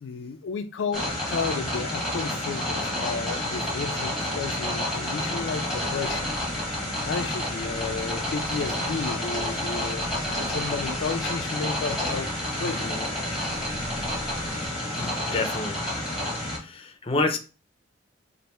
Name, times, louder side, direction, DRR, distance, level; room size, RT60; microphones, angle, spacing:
voice 1, 0.0-6.3 7.0-10.1 10.5-13.1, left 5 dB, 85° left, 0.4 m, -33 dB
sound 1, 0.9-16.6, left 1 dB, ahead, 1.3 m, -29 dB
sound 2, 5.3-14.7, equal, 50° right, 1.3 m, -44 dB
voice 2, 14.3-14.7 14.9-16.2 16.5-17.4, left 3 dB, 30° left, 0.5 m, -30 dB
3.3 x 2.6 x 4.2 m
head